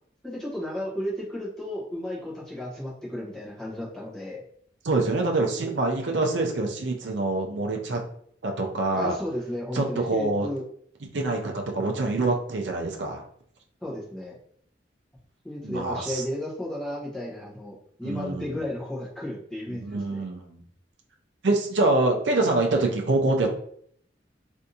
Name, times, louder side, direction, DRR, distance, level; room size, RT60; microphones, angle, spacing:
voice 1, 0.2-4.4 8.9-10.6 13.8-14.4 15.4-20.2, left 1 dB, 5° left, -7 dB, 1.0 m, -34 dB
voice 2, 4.8-8.0 8.4-9.1 9.7-10.5 11.1-13.2 15.6-16.2 18.0-18.6 19.7-20.6 21.4-23.5, right 2 dB, 70° right, 1 dB, 0.5 m, -25 dB
3.4 x 2.6 x 2.7 m, 0.64 s
head